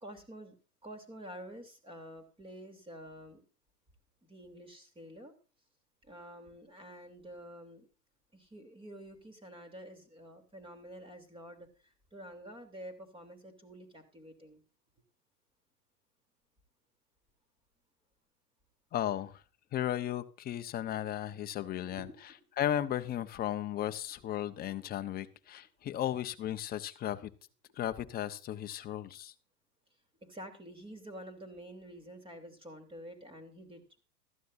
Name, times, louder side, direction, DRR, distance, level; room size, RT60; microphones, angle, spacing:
voice 1, 0.0-0.5 0.8-3.4 4.2-5.3 6.0-7.9 8.3-14.6 20.9-21.0 21.8-22.2 24.5-24.7 30.2-34.0, equal, 10° right, 7 dB, 3.1 m, -49 dB
voice 2, 18.9-19.3 19.7-22.1 22.6-27.3 27.8-29.3, left 11 dB, 20° left, 10 dB, 0.8 m, -35 dB
15.5 x 13.5 x 2.6 m, 0.34 s
hypercardioid pair, 120°, 47 cm